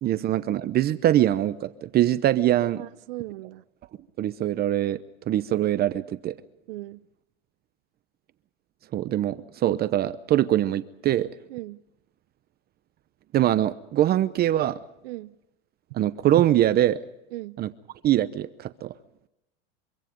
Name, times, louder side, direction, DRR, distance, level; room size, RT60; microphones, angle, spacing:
voice 1, 0.0-2.8 4.2-5.0 5.3-6.4 8.9-11.3 13.3-14.8 15.9-17.0 17.6-17.7 18.0-18.9, right 12 dB, 35° right, 0.8 m, -23 dB
voice 2, 2.8-3.6 6.7-7.0 11.5-11.8 15.0-15.3 17.3-17.6, right 18 dB, 70° right, 0.7 m, -38 dB
25.0 x 24.0 x 5.3 m
supercardioid pair, 125°, 30 cm